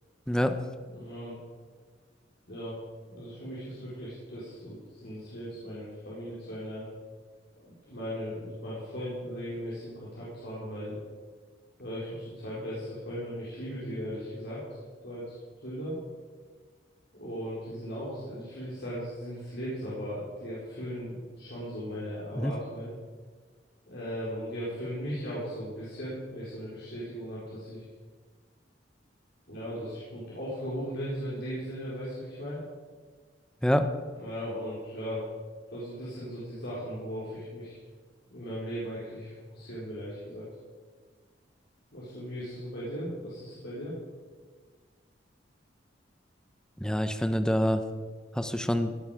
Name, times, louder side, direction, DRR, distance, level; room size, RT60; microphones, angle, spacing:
voice 1, 0.3-0.6 22.4-22.5 33.6-33.9 46.8-47.8 48.3-48.9, equal, 5° left, 8 dB, 0.8 m, -26 dB
voice 2, 0.9-1.4 2.5-2.7 3.1-6.9 7.7-11.0 11.8-14.6 15.0-16.0 17.1-22.9 23.9-27.8 29.5-32.6 34.1-35.3 35.7-37.8 38.3-40.5 41.9-44.0, equal, 65° left, -8 dB, 4.4 m, -37 dB
17.0 x 11.5 x 5.1 m, 1.5 s
head